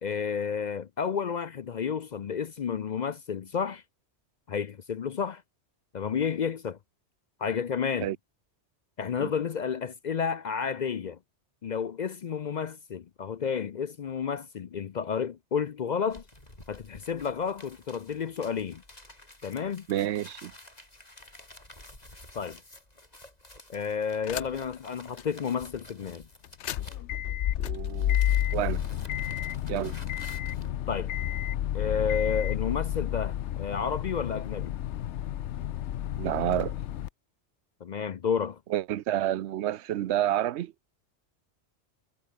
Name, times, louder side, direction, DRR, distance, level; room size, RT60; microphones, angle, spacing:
voice 1, 0.0-3.8 4.5-5.4 5.9-6.8 7.4-8.1 9.0-11.2 11.6-16.2 16.7-18.8 19.4-19.9 22.3-22.6 23.7-26.3 30.9-31.1 31.7-34.8 37.8-38.6, left 6 dB, 50° left, 0.6 m, -31 dB
sound 1, 16.1-27.5 27.8-30.7, left 1 dB, 35° left, 4.8 m, -51 dB
voice 2, 19.9-20.5 27.6-28.2 28.5-28.8 29.7-30.0 36.2-36.7 38.7-40.7, right 12 dB, 75° right, 0.9 m, -29 dB
sound 2, 24.2-24.8 25.2-25.3 26.4-37.1, left 12 dB, 80° left, 1.0 m, -31 dB
omnidirectional pair, 1.2 m